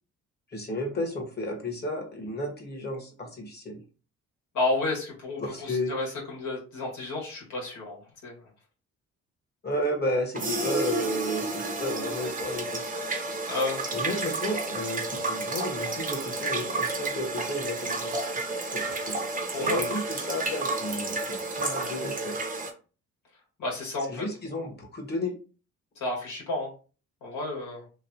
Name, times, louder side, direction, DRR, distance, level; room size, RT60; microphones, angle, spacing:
voice 1, 0.5-3.8 5.4-5.9 9.6-12.8 13.9-18.2 18.6-19.2 19.5-22.4 24.1-25.3, left 1 dB, 35° left, 0 dB, 1.2 m, -32 dB
voice 2, 4.5-8.4 13.5-13.8 19.5-19.9 23.6-24.2 26.0-26.7 27.2-27.8, left 2 dB, 80° left, -2 dB, 1.5 m, -31 dB
sound 1, 10.3-22.7, right 3 dB, 30° right, 0.7 m, -31 dB
3.0 x 2.3 x 2.7 m, 0.36 s
cardioid pair, 90°, 30 cm